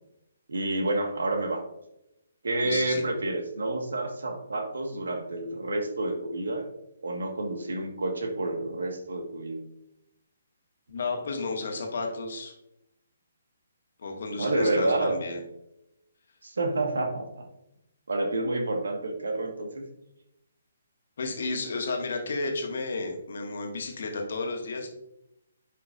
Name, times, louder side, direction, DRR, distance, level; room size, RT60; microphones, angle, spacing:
voice 1, 0.5-1.6 2.4-6.7 7.0-9.6 14.4-15.1 16.4-17.5 18.1-19.8, right 2 dB, 65° right, 4 dB, 1.7 m, -29 dB
voice 2, 2.6-3.0 10.9-12.5 14.0-15.4 21.2-24.9, left 3 dB, 55° left, 2 dB, 1.7 m, -32 dB
10.5 x 5.7 x 2.6 m, 0.84 s
figure-of-eight pair, 135°, 0 cm